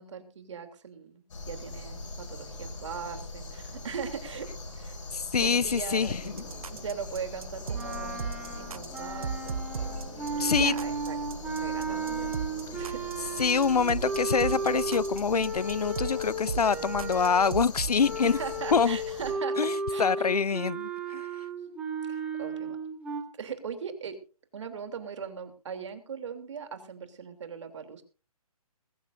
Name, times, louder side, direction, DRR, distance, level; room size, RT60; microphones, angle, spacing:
voice 1, 0.0-5.0 5.4-6.3 6.7-9.6 10.3-11.2 11.6-12.3 12.7-13.4 18.2-20.3 22.0-22.8 23.4-24.2 24.5-28.0, right 6 dB, 50° right, 3.2 m, -40 dB
sound 1, 1.3-19.3, left 2 dB, 55° left, 6.6 m, -42 dB
voice 2, 5.1-6.4 10.4-10.8 13.4-18.4 18.7-19.0 19.6-21.3, left 6 dB, 85° left, 0.6 m, -26 dB
sound 2, 6.2-18.0, right 6 dB, 65° right, 0.9 m, -37 dB
sound 3, 7.7-17.6 18.0-23.2, right 3 dB, 5° right, 3.2 m, -34 dB
21.5 x 13.5 x 2.7 m
figure-of-eight pair, 150°, 19 cm